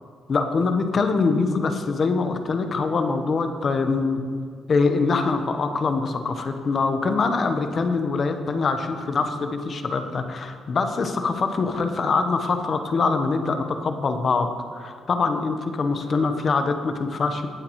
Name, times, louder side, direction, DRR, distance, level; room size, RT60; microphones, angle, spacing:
voice 1, 0.3-4.2 4.7-17.5, left 4 dB, 45° left, 7 dB, 1.1 m, -24 dB
18.5 x 7.8 x 3.2 m, 2.1 s
cardioid pair, 90°, 0 cm